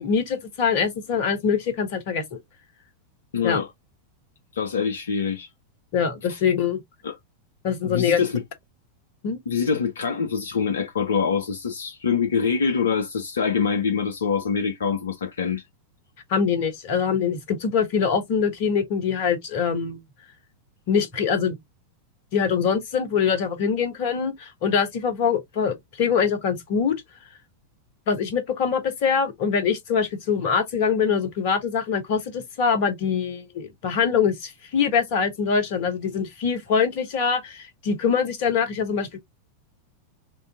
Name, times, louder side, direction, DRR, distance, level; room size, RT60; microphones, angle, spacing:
voice 1, 0.0-2.4 3.4-3.6 5.9-6.8 7.6-8.2 9.2-9.4 16.3-20.0 20.9-21.6 22.3-27.0 28.1-39.2, left 6 dB, 50° left, 1.2 m, -24 dB
voice 2, 3.3-3.7 4.5-5.5 6.3-6.4 7.0-7.2 7.9-8.4 9.5-15.6, left 6 dB, 65° left, 0.5 m, -25 dB
3.7 x 2.6 x 3.6 m
figure-of-eight pair, 90°, 0 cm